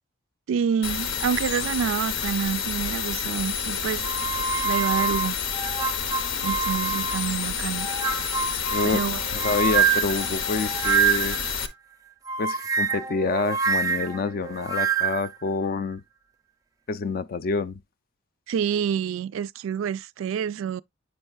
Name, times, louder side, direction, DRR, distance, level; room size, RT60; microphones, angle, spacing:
voice 1, 0.5-4.1 4.6-5.4 6.4-7.9 8.9-9.2 18.5-20.8, right 8 dB, 85° right, 0.3 m, -27 dB
sound 1, 0.8-11.7, left 7 dB, 75° left, 0.7 m, -29 dB
sound 2, 4.0-7.3 7.7-11.5 12.3-15.3, right 6 dB, 20° right, 0.5 m, -26 dB
voice 2, 8.5-9.1 9.3-11.4 12.4-16.0 16.9-17.8, left 4 dB, 50° left, 0.4 m, -27 dB
7.8 x 5.4 x 2.3 m
head